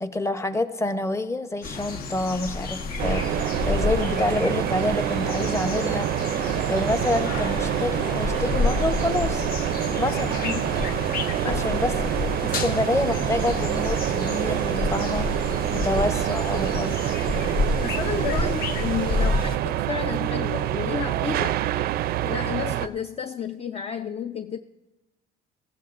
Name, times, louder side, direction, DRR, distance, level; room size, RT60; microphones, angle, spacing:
voice 1, 0.0-6.1 6.4-9.4 10.0-10.4 11.4-15.3 15.7-17.0, left 2 dB, 15° left, 9 dB, 0.8 m, -27 dB
sound 1, 1.6-19.6, left 3 dB, 65° left, 1.1 m, -30 dB
sound 2, 3.0-22.9, right 13 dB, 65° right, 0.4 m, -26 dB
voice 2, 17.8-21.6 22.2-24.6, left 8 dB, 35° left, 9 dB, 0.4 m, -31 dB
19.5 x 15.0 x 2.5 m, 1.1 s
cardioid pair, 110°, 17 cm